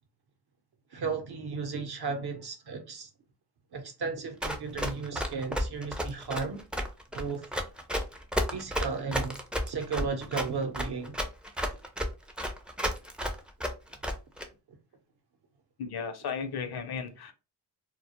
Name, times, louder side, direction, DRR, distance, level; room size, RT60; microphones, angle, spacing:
voice 1, 0.9-3.1 3.7-6.6 7.1-7.5 8.5-9.4 9.7-11.1 11.7-11.8 12.8-12.9, right 4 dB, 60° right, 0.8 m, -34 dB
Run, 4.4-14.5, equal, ahead, 0.4 m, -32 dB
voice 2, 15.8-17.3, left 6 dB, 60° left, 0.6 m, -35 dB
2.2 x 2.0 x 2.8 m
cardioid pair, 55°, 44 cm